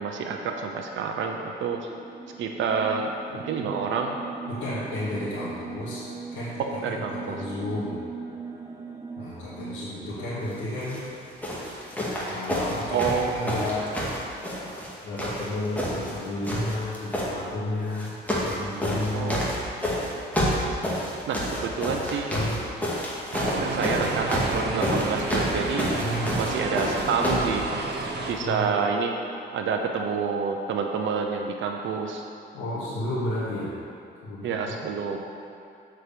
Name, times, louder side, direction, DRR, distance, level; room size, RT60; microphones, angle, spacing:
voice 1, 0.0-1.9 2.4-4.2 6.8-7.4 12.9-13.9 19.1-20.1 21.3-22.3 23.6-25.9 26.4-27.7 28.3-29.1 29.5-32.2 34.4-35.2, right 5 dB, 75° right, 2 dB, 0.8 m, -28 dB
sound 1, 1.7-10.9, right 4 dB, 15° right, 0.9 m, -40 dB
voice 2, 4.5-6.1 6.3-8.0 9.2-11.0 12.2-13.0 13.3-13.9 15.0-19.4 22.3-22.6 26.0-26.4 28.4-28.7 32.5-33.7 34.2-34.6, left 1 dB, 90° left, -12 dB, 2.2 m, -32 dB
sound 2, 10.8-11.0 11.4-14.9 15.2-16.2 16.4-17.3 17.9-18.6 18.8-27.5 28.3-28.4, equal, 10° left, 2.1 m, -28 dB
sound 3, 23.3-28.3, right 3 dB, 55° right, 1.1 m, -31 dB
7.6 x 4.9 x 6.9 m, 2.6 s
cardioid pair, 90°, 20 cm